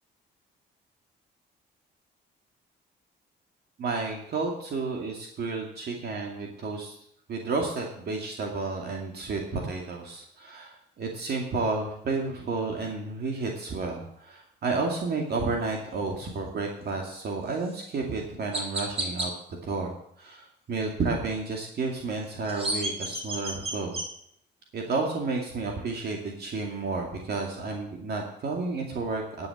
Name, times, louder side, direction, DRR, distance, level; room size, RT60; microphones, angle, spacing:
voice 1, 3.8-6.9 7.3-19.3 19.6-24.0 24.7-29.5, right 3 dB, 60° right, 0 dB, 2.3 m, -31 dB
Chirp tweet, 17.6-17.8 18.5-19.3 22.2-24.1, right 1 dB, 30° right, 3.0 m, -31 dB
11.5 x 6.6 x 8.1 m, 0.70 s
cardioid pair, 105°, 19 cm